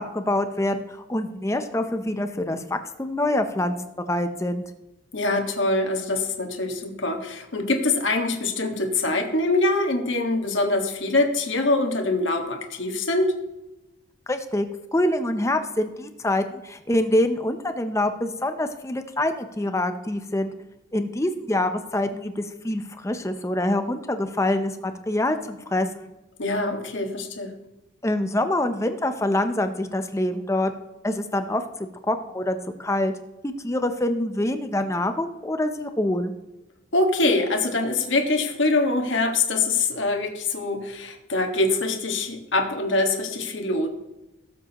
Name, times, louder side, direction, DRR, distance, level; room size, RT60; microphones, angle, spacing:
voice 1, 0.0-3.8 4.1-4.6 14.3-14.7 14.9-20.5 20.9-26.1 28.0-30.7 31.0-31.6 32.1-33.1 33.4-36.3, left 1 dB, 15° left, 8 dB, 0.5 m, -25 dB
voice 2, 5.1-13.3 26.4-27.5 36.9-43.9, left 2 dB, 70° left, 3 dB, 1.6 m, -24 dB
17.5 x 7.5 x 2.9 m, 0.98 s
head